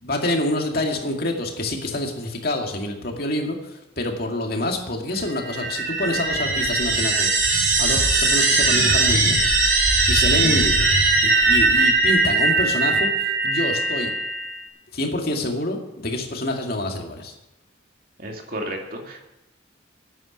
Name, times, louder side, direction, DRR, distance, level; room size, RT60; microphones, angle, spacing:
voice 1, 0.0-7.3 7.8-9.4 10.1-10.9 11.2-14.1 14.9-17.3, left 1 dB, 55° left, 2 dB, 2.3 m, -27 dB
sound 1, 5.3-14.5, right 3 dB, 70° right, 3.8 m, -20 dB
voice 2, 18.2-19.2, right 1 dB, 50° right, 1 dB, 2.4 m, -32 dB
11.5 x 9.1 x 9.0 m, 0.91 s
head